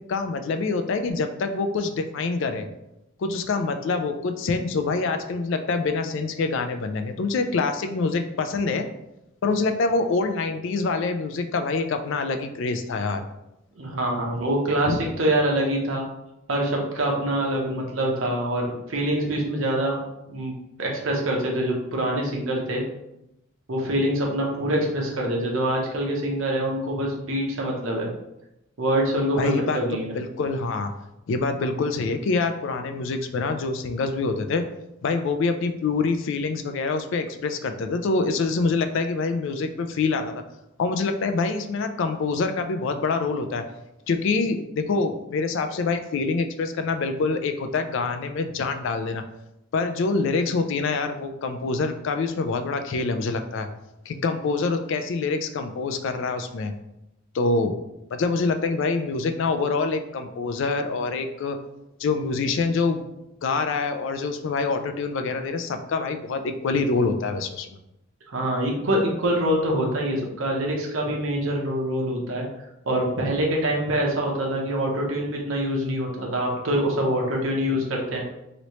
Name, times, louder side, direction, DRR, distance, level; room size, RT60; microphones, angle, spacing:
voice 1, 0.1-2.7 3.2-8.9 9.4-13.2 14.9-15.0 29.4-30.9 31.3-34.6 35.0-40.4 40.8-43.6 44.1-49.2 49.7-53.7 54.1-56.7 57.3-57.8 58.1-61.6 62.0-63.0 63.4-67.8, left 4 dB, 65° left, 7 dB, 0.3 m, -25 dB
voice 2, 13.8-16.0 16.5-20.0 20.3-20.5 20.8-22.8 23.7-28.1 28.8-30.1 68.3-72.5 72.9-78.4, right 1 dB, 70° right, -1 dB, 0.8 m, -25 dB
3.0 x 2.8 x 3.0 m, 0.87 s
head